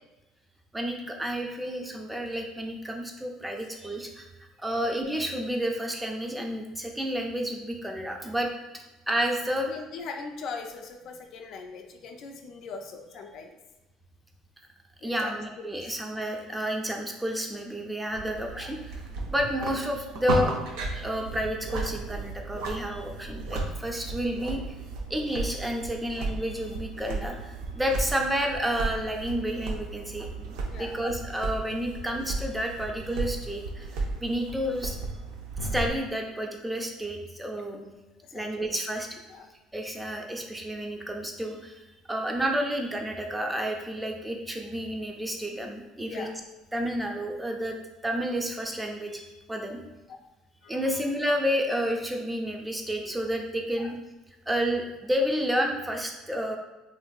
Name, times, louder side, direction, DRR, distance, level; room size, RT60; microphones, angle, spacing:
voice 1, 0.7-4.3 4.6-8.5 9.1-9.7 15.0-19.0 19.3-20.5 20.9-24.8 25.1-35.0 35.6-37.8 38.3-39.1 39.7-46.3 46.7-47.8 48.0-49.8 50.7-54.0 54.5-56.6, equal, 10° right, 2 dB, 0.5 m, -30 dB
voice 2, 9.7-13.6 15.0-15.4 15.8-15.9 18.6-18.7 30.6-31.0 38.3-38.5 39.3-39.5 46.1-46.3 49.7-49.8 50.1-50.2 50.6-50.8 53.8-53.9, left 4 dB, 60° left, 3 dB, 0.4 m, -40 dB
sound 1, 18.1-35.9, right 3 dB, 75° right, 0.4 m, -35 dB
2.9 x 2.5 x 2.3 m, 1.1 s
supercardioid pair, 85°, 0 cm